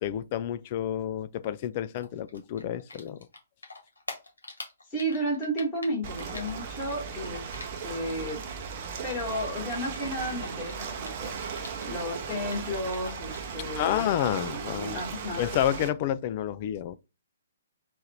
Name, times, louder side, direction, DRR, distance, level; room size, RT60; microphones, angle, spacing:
voice 1, 0.0-3.2 13.8-15.0 15.4-17.0, left 11 dB, 35° left, 0.3 m, -29 dB
Typing, 1.9-8.1 8.4-11.9 12.2-13.5, left 2 dB, 70° left, 1.6 m, -44 dB
voice 2, 4.9-7.5 7.8-8.4 9.0-11.3 11.8-14.0 14.7-15.4, equal, 20° left, 1.7 m, -33 dB
Ocean, 6.0-15.9, right 6 dB, 40° right, 0.7 m, -37 dB
4.1 x 2.5 x 4.3 m
figure-of-eight pair, 125°, 0 cm